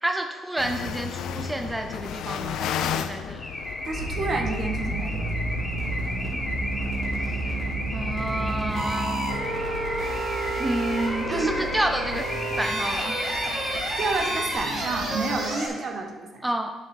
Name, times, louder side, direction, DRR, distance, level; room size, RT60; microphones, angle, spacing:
voice 1, 0.0-3.5 7.3-7.5 7.9-9.3 10.5-13.2 16.4-16.7, right 1 dB, 10° right, 5 dB, 0.5 m, -30 dB
sound 1, 0.6-15.4, left 8 dB, 85° left, 0.4 m, -36 dB
Car / Alarm, 3.4-14.6, left 1 dB, 10° left, 1.3 m, -35 dB
voice 2, 3.8-5.6 11.3-11.7 14.0-16.4, right 3 dB, 55° right, 3 dB, 1.1 m, -30 dB
sound 2, 3.9-15.7, right 2 dB, 75° right, 2.7 m, -30 dB
10.5 x 5.8 x 3.3 m, 1.3 s
cardioid pair, 90°, 0 cm